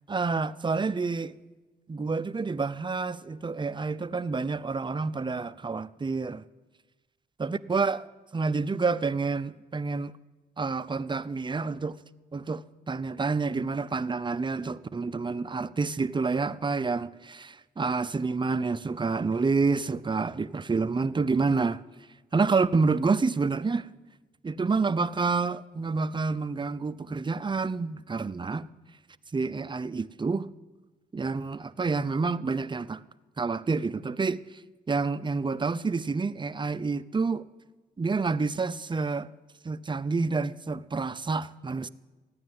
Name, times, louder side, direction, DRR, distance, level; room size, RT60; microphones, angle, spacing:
voice 1, 0.1-1.3 1.9-6.4 7.4-8.1 8.3-10.2 10.6-12.0 12.3-21.8 22.3-23.9 24.4-28.7 29.3-30.5 31.1-33.0 33.4-34.4 34.9-37.5 38.0-39.3 39.6-41.9, right 4 dB, 25° right, 0.6 m, -28 dB
14.0 x 9.8 x 9.5 m
cardioid pair, 65°, 19 cm